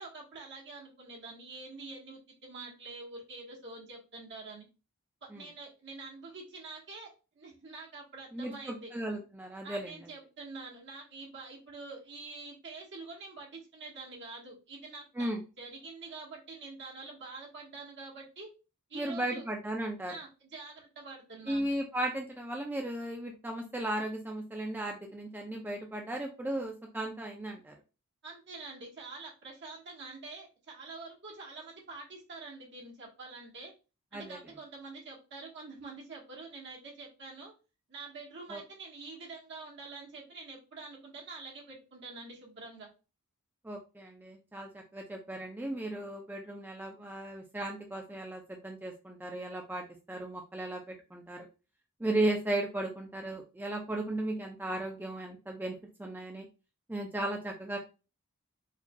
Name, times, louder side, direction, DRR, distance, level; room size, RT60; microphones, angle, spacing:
voice 1, 0.0-4.7 5.2-8.9 9.6-18.5 18.9-19.5 20.1-21.7 28.2-33.7 34.1-37.5 37.9-42.9, right 3 dB, 55° right, -3 dB, 1.3 m, -46 dB
voice 2, 8.3-9.9 15.2-15.4 18.9-20.1 21.5-27.7 34.1-34.4 38.5-38.6 43.6-51.5 52.0-56.5 56.9-57.8, right 1 dB, 10° right, 1 dB, 0.4 m, -36 dB
4.7 x 2.7 x 2.2 m, 0.31 s
head